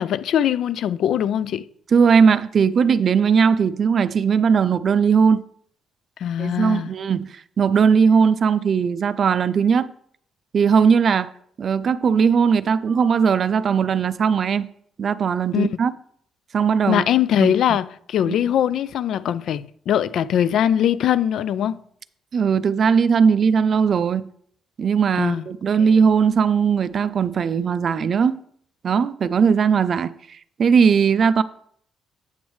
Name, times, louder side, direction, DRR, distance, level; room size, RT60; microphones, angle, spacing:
voice 1, 0.0-1.7 6.2-6.9 15.5-15.7 16.9-21.8 25.2-25.5 25.8-25.9, left 10 dB, 70° left, 0.3 m, -21 dB
voice 2, 1.9-5.4 6.4-9.9 10.5-11.3 11.6-14.7 15.0-15.9 16.5-17.0 17.4-17.5 18.3-18.4 22.3-24.2 24.8-28.4 28.8-31.4, right 6 dB, 50° right, 0.4 m, -18 dB
7.9 x 7.1 x 3.1 m
cardioid pair, 90°, 0 cm